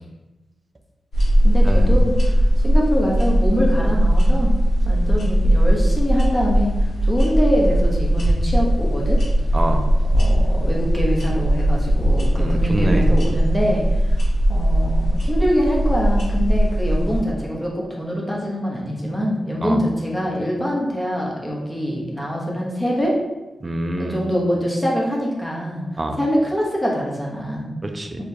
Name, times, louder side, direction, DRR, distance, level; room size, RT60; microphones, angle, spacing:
sound 1, 1.1-17.2, equal, 90° left, 1.3 m, -18 dB
voice 1, 1.4-4.5 4.8-6.7 7.0-9.2 10.1-14.2 14.5-23.2 24.0-25.9 26.2-27.7 28.2-28.3, equal, 10° left, -3 dB, 1.0 m, -24 dB
voice 2, 9.5-9.8 12.4-13.1 19.6-19.8 23.6-24.2 26.0-26.2 27.8-28.2, right 1 dB, 25° right, 5 dB, 0.4 m, -25 dB
6.4 x 2.4 x 2.8 m, 1.1 s
wide cardioid pair, 120°, 0 cm